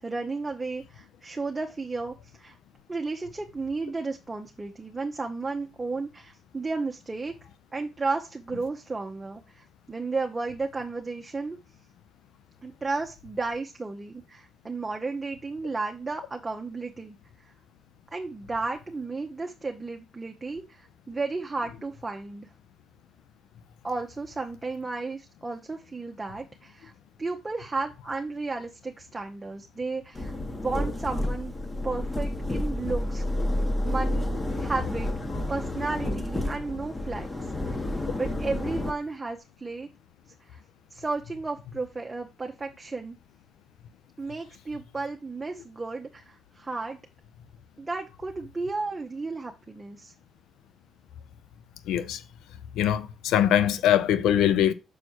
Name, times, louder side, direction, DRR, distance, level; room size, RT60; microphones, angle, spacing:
voice 1, 0.0-2.6 2.9-7.3 7.7-11.6 12.6-17.2 18.1-22.5 23.8-26.9 27.2-31.5 31.8-33.2 33.8-35.1 35.5-37.9 38.2-39.9 40.5-40.6 40.9-43.2 44.2-47.0 47.8-50.1, right 3 dB, 20° right, 1.0 m, -33 dB
sound 1, 30.1-38.9, left 1 dB, 20° left, 1.5 m, -30 dB
voice 2, 51.9-52.2 52.7-54.7, left 10 dB, 85° left, 0.6 m, -22 dB
6.5 x 4.4 x 4.5 m
cardioid pair, 90°, 0 cm